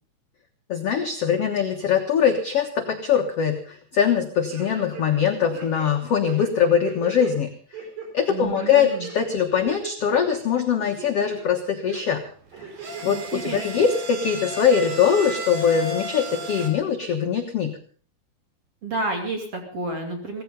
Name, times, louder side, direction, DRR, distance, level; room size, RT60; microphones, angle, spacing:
voice 1, 0.7-7.9 8.1-12.2 12.6-12.7 13.0-17.8, left 7 dB, 70° left, 4 dB, 1.5 m, -22 dB
sound 1, 4.5-5.2 5.5-7.3 7.7-8.1 8.6-9.1 9.5-10.4 10.8-11.4 11.9-12.0 12.6-13.2 13.6-13.7, right 6 dB, 80° right, 6.2 m, -38 dB
voice 2, 8.3-9.1 13.0-13.9 18.8-20.4, right 2 dB, 40° right, 3 dB, 3.1 m, -31 dB
sound 2, 12.4-16.7, right 1 dB, 60° right, 4.6 m, -34 dB
17.0 x 15.5 x 5.3 m, 0.44 s
omnidirectional pair, 4.7 m